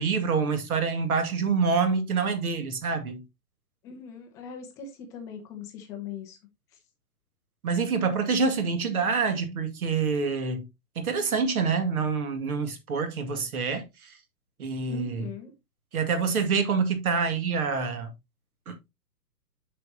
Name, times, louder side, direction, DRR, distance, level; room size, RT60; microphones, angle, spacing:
voice 1, 0.0-3.2 7.6-10.7 11.0-14.1 14.6-15.3 15.9-18.1 18.7-18.9, right 5 dB, 65° right, 2.1 m, -26 dB
voice 2, 3.8-6.4 14.9-15.5, left 7 dB, 5° left, 0.4 m, -40 dB
7.6 x 6.0 x 2.8 m
figure-of-eight pair, 120°, 47 cm